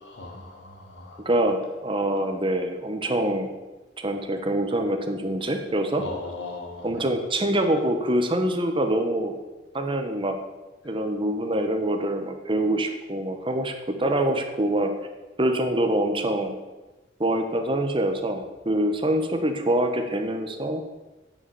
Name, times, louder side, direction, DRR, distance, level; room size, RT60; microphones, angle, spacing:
voice 1, 0.0-1.2 6.0-6.9, left 3 dB, 75° left, -1 dB, 3.1 m, -37 dB
voice 2, 1.2-3.5 4.0-6.0 6.8-9.4 9.7-10.4 10.8-14.9 15.4-16.6 17.2-20.8, right 1 dB, 30° right, 5 dB, 1.4 m, -25 dB
9.8 x 7.0 x 8.9 m, 1.1 s
head